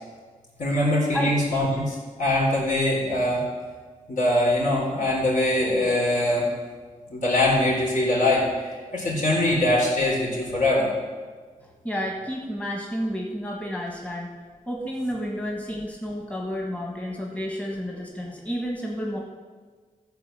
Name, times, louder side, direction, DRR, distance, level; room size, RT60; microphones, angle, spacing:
voice 1, 0.6-3.4 4.1-6.5 7.1-8.4 8.7-10.9, left 1 dB, 65° left, -4 dB, 4.0 m, -22 dB
voice 2, 11.6-14.3 14.7-19.2, equal, 10° left, -1 dB, 1.6 m, -31 dB
14.0 x 4.7 x 7.5 m, 1.5 s
wide cardioid pair, 110°, 14 cm